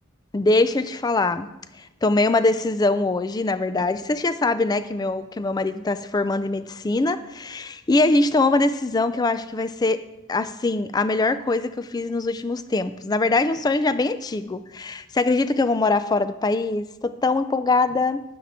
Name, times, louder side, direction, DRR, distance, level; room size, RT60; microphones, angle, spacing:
voice 1, 0.3-1.5 1.8-10.0 10.3-18.2, left 2 dB, 20° left, 13 dB, 0.3 m, -22 dB
9.6 x 9.2 x 3.6 m, 0.95 s
head